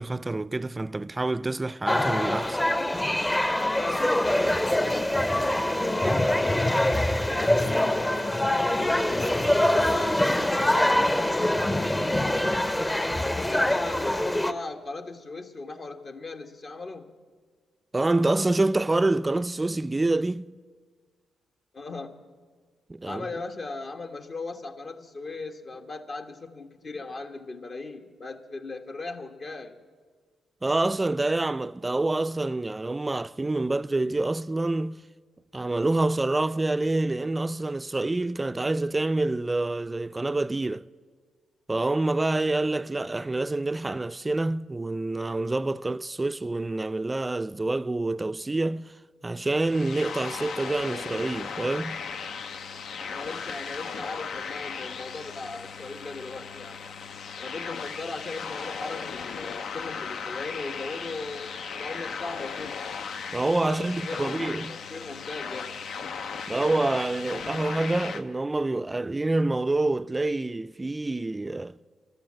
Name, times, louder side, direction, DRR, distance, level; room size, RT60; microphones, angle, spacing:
voice 1, 0.0-2.6 17.9-20.5 22.9-23.3 30.6-35.0 35.5-40.9 41.7-48.9 49.2-52.0 63.3-64.8 66.5-71.8, right 2 dB, 25° right, 0.4 m, -27 dB
sound 1, 1.8-14.5, left 1 dB, 15° left, 0.8 m, -24 dB
voice 2, 3.6-7.0 7.4-12.5 13.4-17.1 21.7-22.2 23.0-29.8 53.1-56.8 57.4-62.8 63.6-65.8, left 3 dB, 50° left, 1.3 m, -38 dB
sound 2, 49.6-68.2, left 6 dB, 70° left, 0.6 m, -37 dB
14.0 x 12.0 x 7.5 m
supercardioid pair, 55°, 0 cm